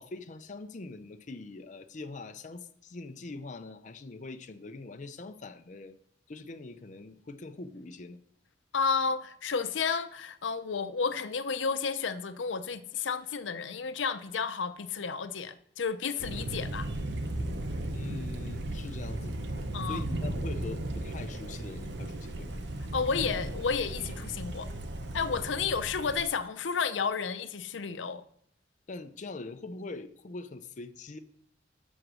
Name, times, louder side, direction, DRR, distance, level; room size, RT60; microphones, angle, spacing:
voice 1, 0.0-6.0 6.3-8.2 17.9-19.4 19.8-22.6 28.9-31.2, left 3 dB, 40° left, 0.5 m, -43 dB
voice 2, 8.7-16.9 19.7-20.0 22.9-24.7 25.1-28.2, left 5 dB, 90° left, 0.6 m, -31 dB
Thunder, 16.2-26.2, right 1 dB, 65° right, 0.9 m, -36 dB
7.7 x 6.3 x 6.2 m
head